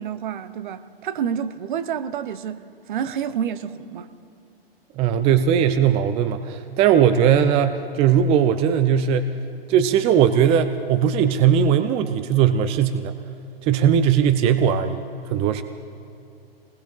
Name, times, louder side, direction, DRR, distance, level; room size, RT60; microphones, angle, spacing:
voice 1, 0.0-2.6 2.9-4.1, right 8 dB, 55° right, 0.8 m, -28 dB
voice 2, 5.0-9.3 9.7-13.1 13.6-15.6, right 8 dB, 20° right, 0.5 m, -19 dB
29.0 x 20.0 x 2.4 m
figure-of-eight pair, 105°, 30 cm